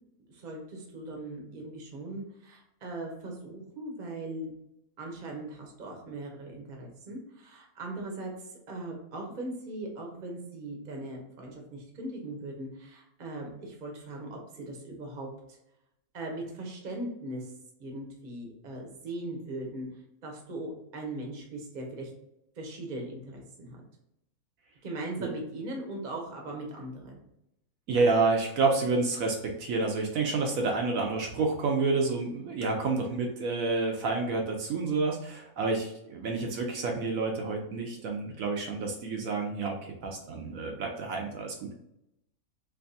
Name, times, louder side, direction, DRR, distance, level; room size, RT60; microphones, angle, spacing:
voice 1, 0.3-4.5 5.0-15.6 16.1-17.5 17.8-19.9 20.2-22.1 22.6-23.8 24.8-27.2, right 1 dB, 40° right, 1 dB, 0.8 m, -39 dB
voice 2, 27.9-41.7, right 3 dB, 70° right, 1 dB, 1.0 m, -29 dB
3.4 x 3.1 x 2.6 m, 0.82 s
omnidirectional pair, 1.5 m